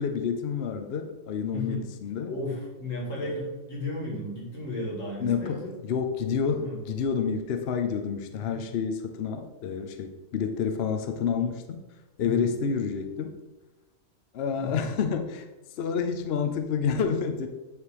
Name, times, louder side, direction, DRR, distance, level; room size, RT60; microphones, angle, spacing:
voice 1, 0.0-2.3 3.2-3.5 5.2-11.8 12.2-13.4 14.3-15.5 15.8-17.5, left 6 dB, 60° left, 5 dB, 0.8 m, -29 dB
voice 2, 1.5-1.8 2.3-5.7 6.6-6.8 8.4-8.6 12.2-12.5 14.6-14.9, left 2 dB, 75° left, -3 dB, 2.5 m, -34 dB
9.7 x 3.5 x 4.9 m, 1.1 s
omnidirectional pair, 1.4 m